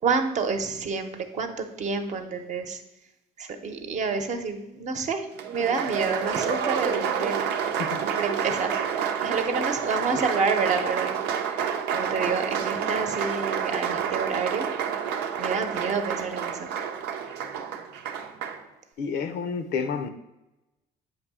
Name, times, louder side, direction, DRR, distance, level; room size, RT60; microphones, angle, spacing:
voice 1, 0.0-2.8 3.4-5.3 5.5-7.5 8.0-11.2 11.4-14.7 15.4-16.7, right 5 dB, 45° right, 6 dB, 0.9 m, -29 dB
Applause, 5.4-18.6, right 7 dB, 85° right, 0.7 m, -29 dB
voice 2, 19.0-20.1, left 5 dB, 75° left, 9 dB, 0.8 m, -29 dB
8.1 x 2.7 x 6.1 m, 0.95 s
cardioid pair, 110°, 17 cm